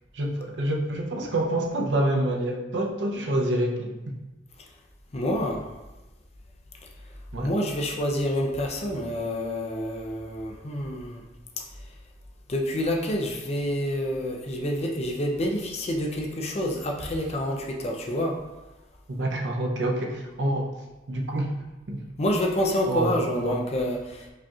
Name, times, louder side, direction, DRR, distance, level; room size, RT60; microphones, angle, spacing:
voice 1, 0.1-4.1 7.3-7.5 19.1-20.7 21.1-21.5 21.9-22.0 22.8-23.6, right 1 dB, 85° right, 0 dB, 0.6 m, -27 dB
voice 2, 5.1-5.6 7.4-11.2 12.5-18.4 22.2-24.3, left 1 dB, 35° left, 1 dB, 0.5 m, -28 dB
4.9 x 2.9 x 2.3 m, 1.0 s
head